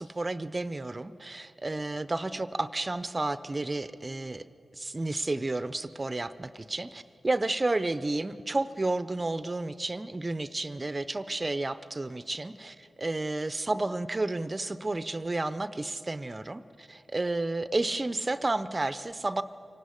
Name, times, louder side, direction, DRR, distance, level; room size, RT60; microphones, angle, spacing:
voice 1, 0.0-4.4 4.7-19.4, right 2 dB, 35° right, 14 dB, 0.6 m, -31 dB
24.0 x 11.0 x 9.7 m, 2.8 s
cardioid pair, 45°, 0 cm